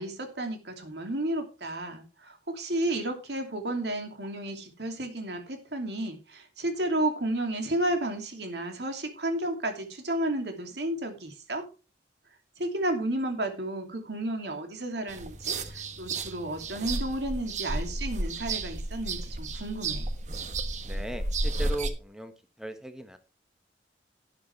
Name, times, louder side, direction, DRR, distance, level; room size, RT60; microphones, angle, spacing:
voice 1, 0.0-11.6 12.6-20.0, right 1 dB, 70° right, 5 dB, 2.7 m, -32 dB
sound 1, 15.1-21.9, right 2 dB, 45° right, 1.3 m, -32 dB
voice 2, 20.8-22.3 22.6-23.2, right 1 dB, 5° right, 8 dB, 1.2 m, -37 dB
12.0 x 9.7 x 3.4 m, 0.32 s
head